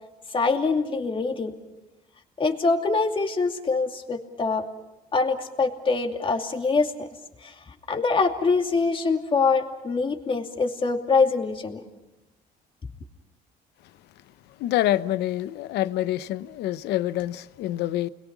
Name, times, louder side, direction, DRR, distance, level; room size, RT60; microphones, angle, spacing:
voice 1, 0.3-1.5 2.4-4.7 5.1-7.1 7.4-7.5 7.9-11.8, left 4 dB, 30° left, 2.5 m, -24 dB
voice 2, 14.6-18.1, left 14 dB, 80° left, 0.8 m, -26 dB
29.5 x 22.0 x 6.1 m
cardioid pair, 110°, 17 cm